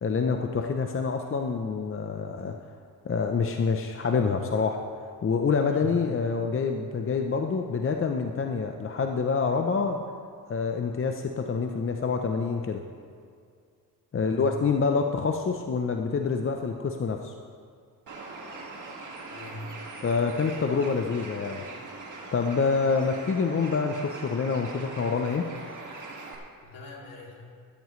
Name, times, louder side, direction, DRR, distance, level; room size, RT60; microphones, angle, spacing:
voice 1, 0.0-2.6 3.0-4.8 5.2-10.0 10.5-12.8 14.1-17.3 20.0-21.6 22.3-25.5, left 5 dB, 35° left, 5 dB, 0.7 m, -27 dB
voice 2, 14.1-14.5 19.3-19.7 26.6-27.4, left 2 dB, 65° left, -2 dB, 2.9 m, -41 dB
Bird, 18.1-26.3, right 3 dB, 55° right, 2.1 m, -41 dB
14.0 x 13.0 x 3.2 m, 2.2 s
cardioid pair, 75°, 37 cm